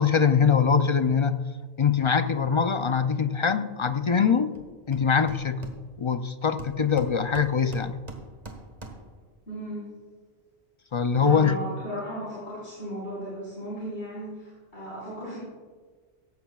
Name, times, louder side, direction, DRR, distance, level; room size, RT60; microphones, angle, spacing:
voice 1, 0.0-1.4 1.8-4.5 4.9-5.6 6.0-8.0 10.9-11.6, left 6 dB, 40° left, 9 dB, 0.4 m, -23 dB
Hammer, 4.5-4.6 4.9-6.2 6.6-9.2, right 2 dB, 35° right, 1.6 m, -43 dB
voice 2, 9.5-9.9 11.2-15.4, right 1 dB, 80° left, -9 dB, 4.9 m, -36 dB
16.5 x 14.5 x 2.4 m, 1.5 s
omnidirectional pair, 1.1 m